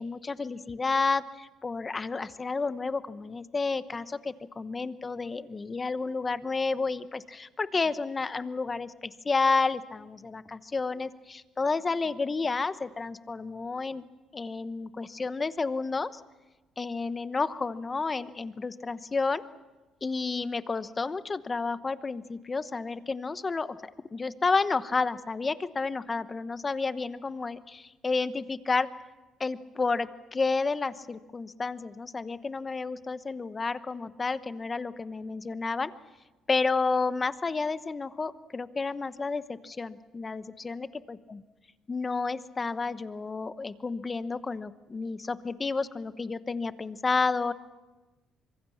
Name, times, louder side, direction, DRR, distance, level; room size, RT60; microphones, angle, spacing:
voice 1, 0.0-14.0 14.3-16.2 16.8-19.4 20.0-28.9 29.4-35.9 36.5-41.4 41.9-47.5, left 4 dB, 25° left, 13 dB, 1.0 m, -31 dB
25.0 x 23.0 x 7.3 m, 1.2 s
cardioid pair, 105°, 0 cm